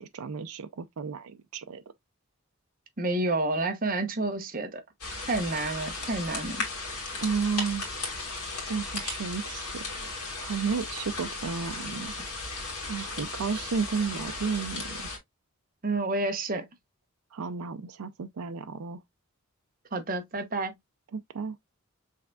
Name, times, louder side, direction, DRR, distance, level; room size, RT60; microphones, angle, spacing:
voice 1, 0.0-1.8 7.2-7.9 8.7-9.8 10.4-12.1 12.9-15.1 17.3-19.0 21.1-21.6, right 5 dB, 80° right, 0.5 m, -32 dB
voice 2, 3.0-4.8 5.3-6.7 15.8-16.7 19.9-20.7, right 2 dB, 40° right, 0.9 m, -29 dB
sound 1, 5.0-15.2, left 3 dB, 90° left, 2.3 m, -36 dB
5.6 x 3.4 x 2.3 m
head